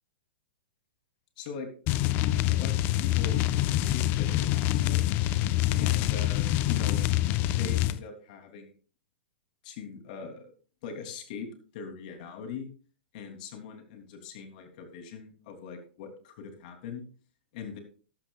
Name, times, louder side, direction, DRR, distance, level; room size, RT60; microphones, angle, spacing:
voice 1, 1.4-1.7 2.5-3.4 3.7-5.0 5.7-7.0 7.5-8.7 9.6-10.5 10.8-11.5 11.7-12.7 13.1-17.0 17.5-17.8, left 6 dB, 55° left, 4 dB, 3.1 m, -41 dB
sound 1, 1.9-8.0, left 14 dB, 35° left, 0.7 m, -26 dB
14.0 x 12.0 x 2.4 m, 0.39 s
hypercardioid pair, 135°, 5 cm